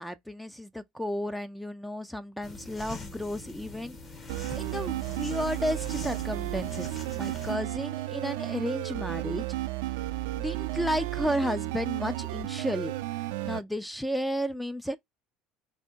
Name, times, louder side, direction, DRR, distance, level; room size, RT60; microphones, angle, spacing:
voice 1, 0.0-4.0 4.5-6.9 7.1-9.4 10.4-12.9 13.4-15.0, equal, 5° left, 0.4 m, -32 dB
sound 1, 2.4-7.6, left 3 dB, 35° left, 1.4 m, -44 dB
sound 2, 4.3-13.6, right 17 dB, 85° right, 0.4 m, -33 dB
3.4 x 2.7 x 4.4 m
supercardioid pair, 100°, 0 cm